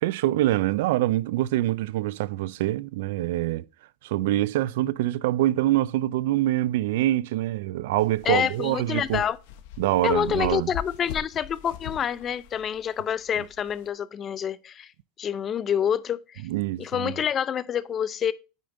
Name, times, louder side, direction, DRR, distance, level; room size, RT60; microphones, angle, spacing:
voice 1, 0.0-3.6 4.0-9.2 9.8-10.7 16.4-17.1, right 15 dB, 75° right, 0.3 m, -25 dB
sound 1, 8.0-13.9, left 9 dB, 70° left, 0.9 m, -41 dB
voice 2, 8.3-9.4 10.0-14.9 15.2-16.4 16.8-18.3, left 8 dB, 30° left, 0.4 m, -27 dB
8.9 x 5.1 x 2.6 m
supercardioid pair, 125°, 0 cm